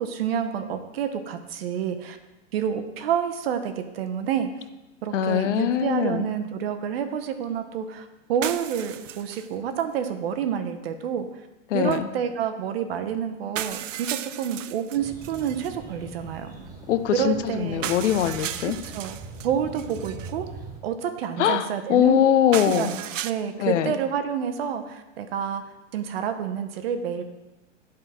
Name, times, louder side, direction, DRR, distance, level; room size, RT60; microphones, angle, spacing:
voice 1, 0.0-2.2 2.5-4.5 5.0-11.3 11.7-16.6 17.1-17.9 18.6-19.2 19.4-20.5 20.8-22.2 22.6-23.0 23.2-25.6 25.9-27.2, right 8 dB, 55° right, 8 dB, 0.8 m, -28 dB
voice 2, 5.1-6.3 11.7-12.1 16.9-18.8 21.4-22.9 23.6-23.9, left 10 dB, 70° left, 11 dB, 0.7 m, -22 dB
sound 1, 8.4-9.5 9.8-9.9 11.9-12.0 12.9-13.0 13.5-15.7 17.8-19.5 19.7-20.3 22.5-23.3, right 11 dB, 85° right, 0.5 m, -35 dB
sound 2, 14.9-20.8, right 4 dB, 10° right, 0.6 m, -41 dB
10.5 x 3.8 x 4.2 m, 1.0 s
hypercardioid pair, 150°, 37 cm